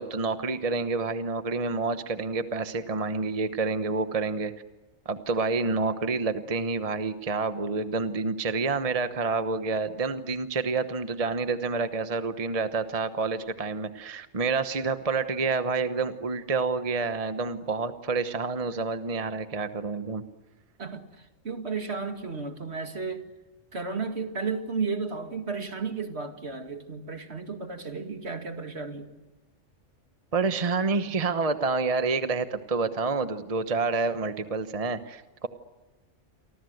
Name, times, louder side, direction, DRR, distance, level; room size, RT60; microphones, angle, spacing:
voice 1, 0.0-4.5 5.0-20.2 30.3-35.5, right 4 dB, 30° right, 10 dB, 1.1 m, -28 dB
voice 2, 20.8-23.3 23.7-29.1, right 4 dB, 60° right, 7 dB, 2.5 m, -33 dB
29.0 x 24.5 x 7.9 m, 1.1 s
omnidirectional pair, 1.2 m